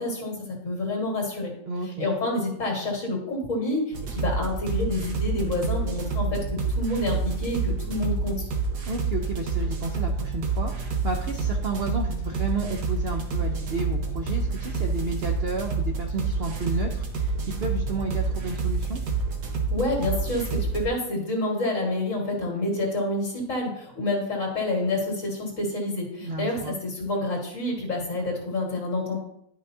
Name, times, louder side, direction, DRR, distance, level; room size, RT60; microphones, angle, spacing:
voice 1, 0.0-1.5 2.0-8.5 19.7-29.2, left 2 dB, 50° left, -1 dB, 2.1 m, -28 dB
voice 2, 1.7-2.1 8.8-19.0 26.2-26.8, right 3 dB, 55° right, 2 dB, 0.7 m, -32 dB
sound 1, 3.9-20.9, right 4 dB, 80° right, 1.7 m, -28 dB
11.0 x 5.6 x 2.7 m, 0.73 s
omnidirectional pair, 1.7 m